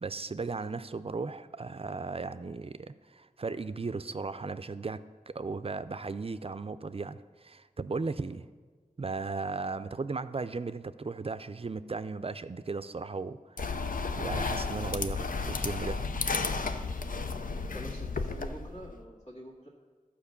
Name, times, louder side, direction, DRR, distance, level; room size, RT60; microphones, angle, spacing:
voice 1, 0.0-5.0 5.3-8.5 9.0-13.4 13.7-13.8 14.2-16.0, right 4 dB, 45° right, 13 dB, 0.4 m, -36 dB
sound 1, 13.6-18.9, left 4 dB, 75° left, 0.5 m, -33 dB
voice 2, 17.4-19.7, equal, 55° left, -5 dB, 2.2 m, -46 dB
12.0 x 5.1 x 6.9 m, 1.4 s
wide cardioid pair, 45°, 14 cm